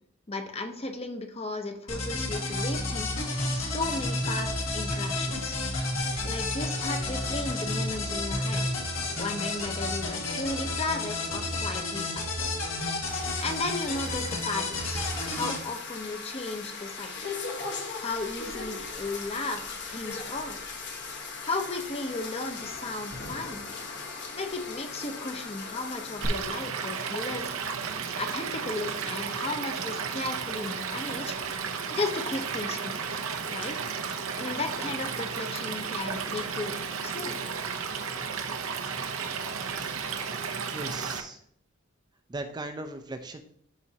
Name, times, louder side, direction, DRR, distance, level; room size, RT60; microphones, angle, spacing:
voice 1, 0.3-5.6 6.2-8.7 9.2-12.5 13.4-17.3 17.6-20.6 21.4-23.7 24.3-27.5 28.2-31.3 31.9-33.0 33.5-33.9 34.4-36.8 37.0-37.5, left 2 dB, 30° left, 6 dB, 0.8 m, -35 dB
sound 1, 1.9-15.6, left 2 dB, 75° left, 1.9 m, -31 dB
sound 2, 13.1-26.2, left 4 dB, 55° left, 1.2 m, -39 dB
Stream / Liquid, 26.2-41.2, right 6 dB, 90° right, 0.7 m, -33 dB
voice 2, 40.7-41.4 42.3-43.4, right 2 dB, 20° right, 7 dB, 0.5 m, -38 dB
12.0 x 4.2 x 2.8 m, 0.64 s
head